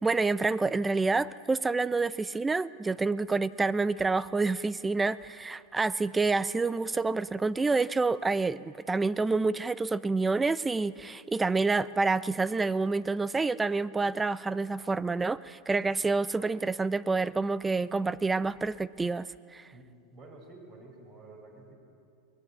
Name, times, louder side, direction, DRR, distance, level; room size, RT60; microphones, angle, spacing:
voice 1, 0.0-19.6, right 3 dB, 10° right, 18 dB, 0.5 m, -28 dB
voice 2, 19.7-21.7, right 2 dB, 35° right, 2 dB, 5.6 m, -50 dB
22.0 x 20.0 x 8.7 m, 2.5 s
supercardioid pair, 145°, 0 cm